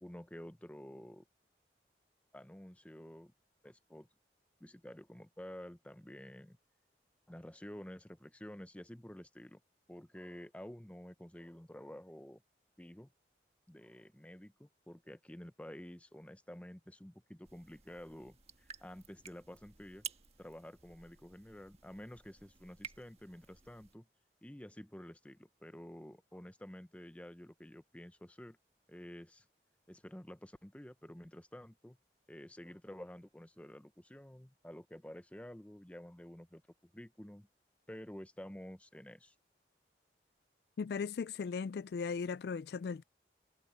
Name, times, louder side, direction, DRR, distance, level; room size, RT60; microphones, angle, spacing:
voice 1, 0.0-1.2 2.3-3.3 3.6-4.1 4.6-6.6 7.3-9.6 9.9-12.4 12.8-13.1 13.7-20.1 20.4-24.1 24.4-28.6 28.9-29.5 29.9-32.0 32.3-36.6 36.9-37.5 37.9-39.3, equal, 10° left, 0.7 m, -50 dB
sound 1, 17.4-23.9, right 7 dB, 35° right, 1.6 m, -53 dB
voice 2, 40.8-43.0, left 5 dB, 65° left, 0.3 m, -37 dB
head